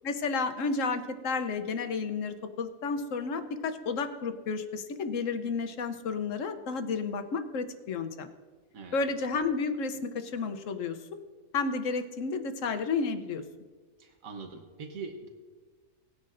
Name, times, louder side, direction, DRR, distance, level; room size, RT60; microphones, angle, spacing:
voice 1, 0.0-8.3 8.9-11.0 11.5-13.4, left 4 dB, 70° left, 9 dB, 1.1 m, -31 dB
voice 2, 14.0-15.3, right 4 dB, 90° right, 4 dB, 1.4 m, -42 dB
18.5 x 9.5 x 2.6 m, 1.4 s
omnidirectional pair, 1.4 m